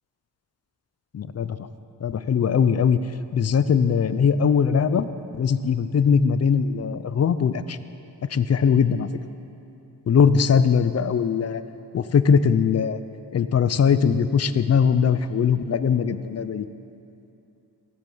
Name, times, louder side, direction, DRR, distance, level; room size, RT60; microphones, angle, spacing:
voice 1, 1.1-1.6 2.0-3.0 3.3-5.0 5.4-7.8 8.3-9.1 10.1-11.6 11.9-13.0 13.3-16.7, left 6 dB, 40° left, 13 dB, 0.5 m, -20 dB
16.5 x 14.5 x 5.5 m, 2.7 s
wide cardioid pair, 160°, 41 cm